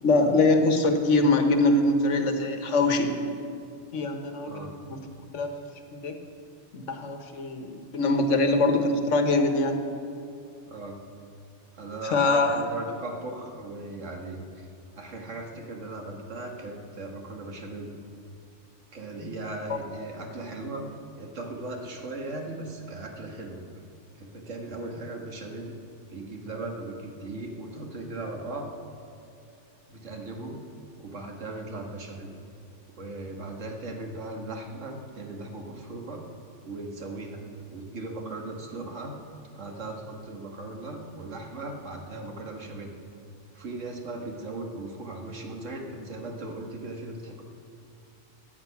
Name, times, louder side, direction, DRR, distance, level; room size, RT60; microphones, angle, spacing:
voice 1, 0.0-3.2 3.9-5.0 5.3-5.6 5.9-6.2 6.7-9.8 12.0-12.6 19.7-19.8, left 2 dB, 80° left, 6 dB, 1.5 m, -23 dB
voice 2, 4.4-4.8 10.7-11.0 11.7-14.7 15.0-17.9 18.9-20.9 21.2-23.6 24.2-25.7 26.1-28.7 29.9-30.6 31.0-32.3 32.9-36.2 36.6-37.4 37.7-39.2 39.5-42.9 43.5-47.4, right 2 dB, 90° right, 2 dB, 2.0 m, -38 dB
17.0 x 9.5 x 5.9 m, 2.6 s
omnidirectional pair, 1.2 m